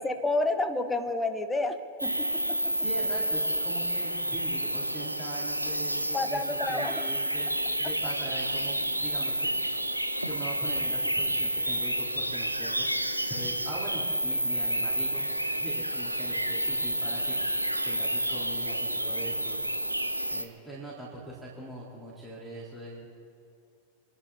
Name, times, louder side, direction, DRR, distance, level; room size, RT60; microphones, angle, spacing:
voice 1, 0.0-2.7 6.1-7.0, left 2 dB, 10° left, 9 dB, 1.1 m, -30 dB
sound 1, 2.0-20.4, right 1 dB, 90° right, 0.9 m, -30 dB
voice 2, 2.7-7.5 7.8-9.5 10.2-12.9 13.3-15.3 15.6-17.4 17.8-19.6 20.3-23.1, right 2 dB, 5° right, -8 dB, 4.3 m, -41 dB
28.0 x 11.5 x 4.3 m, 2.4 s
figure-of-eight pair, 90°, 0 cm